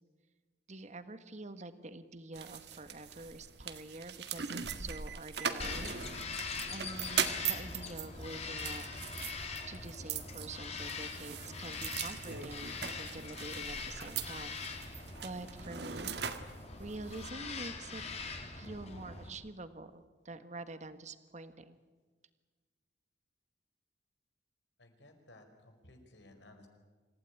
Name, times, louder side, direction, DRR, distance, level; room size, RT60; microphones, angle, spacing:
voice 1, 0.7-6.0 6.7-8.8 9.7-21.8, right 2 dB, 40° right, 11 dB, 1.5 m, -47 dB
sound 1, 2.3-17.3, right 7 dB, 65° right, 1.8 m, -41 dB
Bird vocalization bird call bird song, 5.6-19.3, left 4 dB, 40° left, 3.0 m, -42 dB
voice 2, 24.8-26.7, left 1 dB, 80° left, 4 dB, 5.1 m, -58 dB
27.0 x 16.0 x 10.0 m, 1.4 s
head